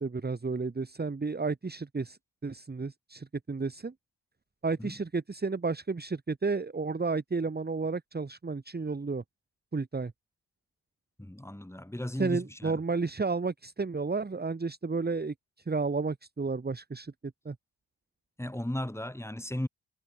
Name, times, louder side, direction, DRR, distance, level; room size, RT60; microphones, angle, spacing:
voice 1, 0.0-3.9 4.6-9.2 9.7-10.1 12.2-15.3 15.7-17.6, right 4 dB, 20° right, 1.7 m, -32 dB
voice 2, 11.2-12.8 18.4-19.7, left 1 dB, 5° left, 6.7 m, -36 dB
wide cardioid pair, 145°, 46 cm